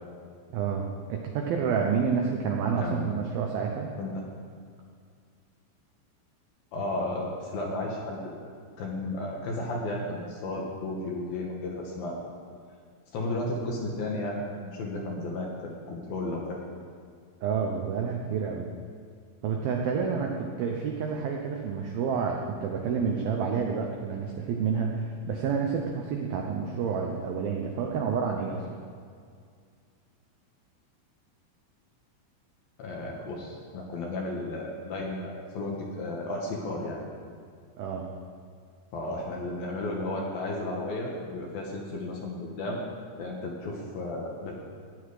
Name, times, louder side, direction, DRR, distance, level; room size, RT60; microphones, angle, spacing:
voice 1, 0.5-3.9 17.4-18.7 19.4-28.7 37.8-38.1, right 6 dB, 90° right, 1 dB, 2.1 m, -29 dB
voice 2, 2.8-3.3 4.0-4.2 6.7-8.4 8.8-12.2 13.1-16.6 20.2-20.3 32.8-37.0 38.9-42.8 43.2-44.5, left 2 dB, 65° left, -2 dB, 2.6 m, -33 dB
15.5 x 10.0 x 4.9 m, 2.2 s
omnidirectional pair, 5.6 m